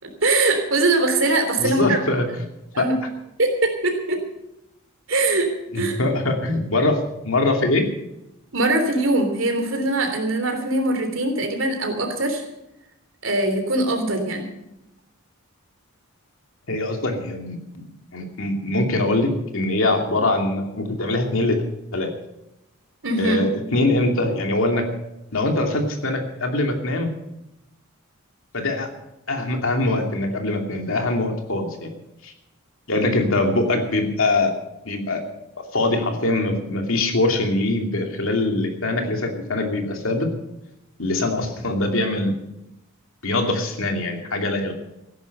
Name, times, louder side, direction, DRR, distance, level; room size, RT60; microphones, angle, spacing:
voice 1, 0.0-2.0 2.7-2.9 3.4-4.2 5.1-5.5 5.7-6.0 8.5-12.4 13.2-14.5 23.0-23.4, right 2 dB, 65° right, 5 dB, 3.4 m, -22 dB
voice 2, 1.6-2.4 2.8-2.9 5.7-7.8 16.7-17.8 18.1-21.6 21.9-22.1 23.2-24.9 25.3-27.1 28.5-28.9 29.3-31.9 32.2-32.3 32.9-34.5 34.8-35.2 35.7-40.3 41.0-42.3 43.2-44.7, left 2 dB, 70° left, 3 dB, 2.7 m, -23 dB
15.5 x 11.5 x 6.7 m, 0.90 s
head